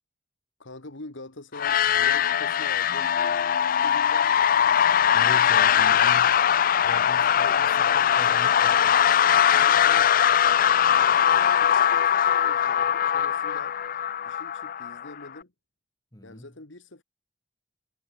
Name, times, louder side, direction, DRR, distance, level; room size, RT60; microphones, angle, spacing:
voice 1, 0.6-3.1 3.6-4.3 9.6-10.1 10.8-13.8 14.2-15.5 16.2-17.0, left 2 dB, 70° left, 2.1 m, -44 dB
sound 1, 1.5-15.3, left 9 dB, 45° left, 0.4 m, -21 dB
voice 2, 5.1-9.0 16.1-16.5, equal, 20° left, 2.2 m, -42 dB
head